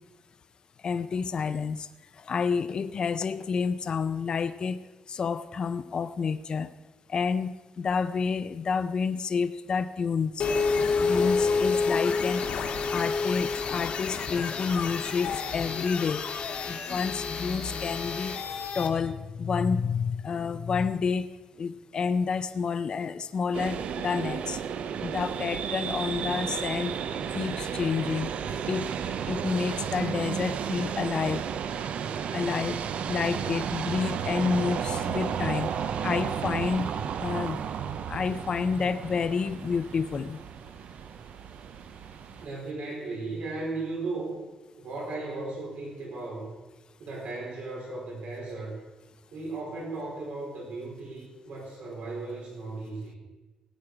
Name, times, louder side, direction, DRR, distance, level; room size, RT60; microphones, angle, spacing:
voice 1, 0.8-1.9 2.2-6.7 7.1-10.5 11.0-12.4 12.9-16.3 16.7-18.4 18.7-21.3 21.6-24.6 25.0-26.9 27.3-28.3 28.7-28.9 29.3-31.4 32.3-32.8 33.1-35.7 36.0-36.9 37.2-37.6 38.1-40.4, left 5 dB, 40° left, 11 dB, 0.5 m, -29 dB
sound 1, 10.4-18.9, left 4 dB, 70° left, 1.6 m, -29 dB
sound 2, 23.5-42.5, right 8 dB, 65° right, 0.6 m, -33 dB
voice 2, 42.4-44.4 44.8-46.5 47.0-48.8 49.3-53.2, right 3 dB, 85° right, -3 dB, 4.6 m, -36 dB
18.0 x 9.2 x 4.9 m, 1.2 s
wide cardioid pair, 155°, 2 cm